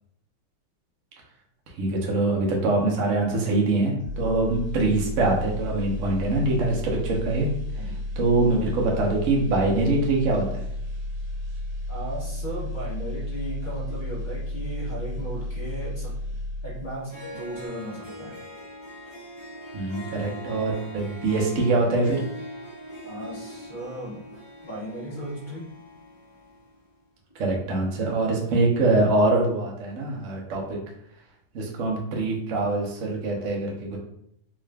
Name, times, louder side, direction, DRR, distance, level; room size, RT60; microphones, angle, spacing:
voice 1, 1.8-7.5 8.2-10.7 19.7-22.2 27.4-30.8 31.5-34.0, right 2 dB, 55° right, -1 dB, 0.9 m, -24 dB
sound 1, 4.0-17.1 17.5-17.7, left 1 dB, 90° right, 1.5 m, -32 dB
voice 2, 7.7-8.0 11.9-16.2 16.6-18.3 23.0-24.3 24.6-25.7, right 1 dB, 45° left, -6 dB, 0.6 m, -36 dB
Harp, 16.8-16.9 17.1-26.6, equal, 15° right, 0.7 m, -41 dB
3.7 x 2.4 x 3.3 m, 0.72 s
omnidirectional pair, 2.3 m